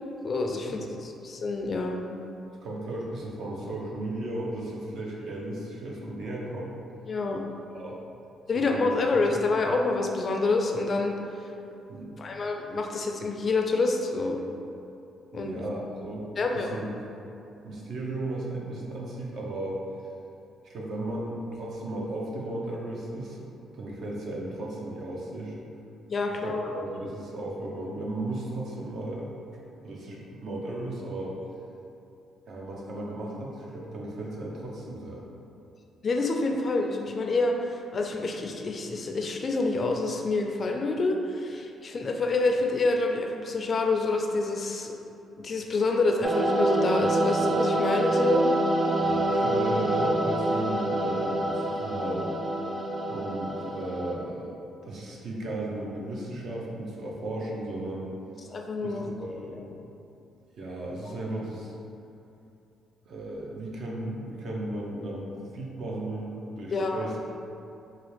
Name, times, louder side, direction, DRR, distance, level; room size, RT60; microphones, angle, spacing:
voice 1, 0.2-0.9 1.2-2.0 7.1-7.4 8.5-11.1 12.2-14.4 15.3-15.6 16.4-16.7 26.1-26.7 36.0-45.0 45.4-48.5 58.5-59.6 66.7-67.1, left 3 dB, 45° left, 2 dB, 0.4 m, -27 dB
voice 2, 2.6-6.8 7.7-8.0 8.5-9.2 11.9-12.2 15.3-17.0 17.6-19.8 20.6-25.6 26.3-29.3 29.8-31.3 32.5-35.3 49.0-52.3 53.1-54.5 54.8-58.1 58.8-59.7 60.6-61.7 63.1-67.3, right 1 dB, 65° right, -3 dB, 0.7 m, -35 dB
sound 1, 46.2-54.1, right 1 dB, 30° right, 0.4 m, -26 dB
3.9 x 2.4 x 3.2 m, 2.7 s
cardioid pair, 90°, 0 cm